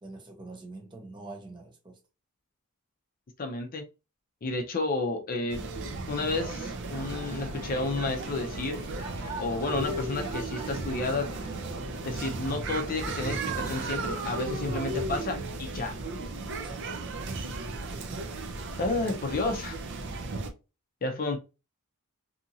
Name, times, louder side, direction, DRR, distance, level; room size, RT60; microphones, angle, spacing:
voice 1, 0.0-2.0 16.5-18.2, right 2 dB, 20° right, 0.7 m, -46 dB
voice 2, 3.4-3.8 4.4-5.6 6.1-8.8 9.4-11.3 12.0-15.9 18.8-19.8 21.0-21.4, left 2 dB, 40° left, 0.5 m, -31 dB
sound 1, 5.5-20.5, right 2 dB, 55° right, 0.5 m, -35 dB
sound 2, 6.9-14.9, right 1 dB, 85° right, 1.3 m, -42 dB
2.8 x 2.5 x 2.6 m
head